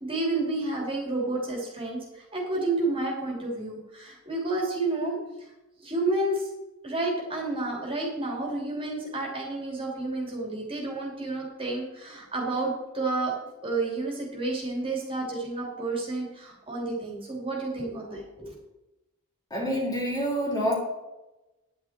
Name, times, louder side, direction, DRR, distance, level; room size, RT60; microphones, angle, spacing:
voice 1, 0.0-5.2 5.8-6.5 6.8-13.3 13.6-18.5, right 2 dB, 25° right, -2 dB, 3.0 m, -30 dB
voice 2, 19.5-20.8, equal, 20° left, -4 dB, 3.8 m, -27 dB
10.5 x 10.0 x 4.4 m, 0.98 s
head